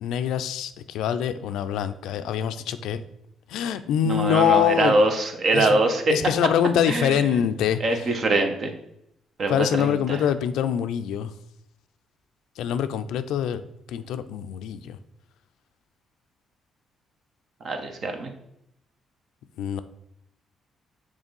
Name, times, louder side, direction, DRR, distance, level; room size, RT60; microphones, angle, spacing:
voice 1, 0.0-3.0 3.5-5.0 5.5-5.8 6.1-7.8 9.5-11.3 12.6-13.6 13.9-15.0 19.6-19.8, left 9 dB, 85° left, 11 dB, 0.4 m, -24 dB
voice 2, 4.0-6.1 6.9-7.2 7.8-8.7 9.4-10.2 17.6-18.3, right 2 dB, 55° right, 5 dB, 1.2 m, -23 dB
6.3 x 3.4 x 5.3 m, 0.78 s
cardioid pair, 90°, 0 cm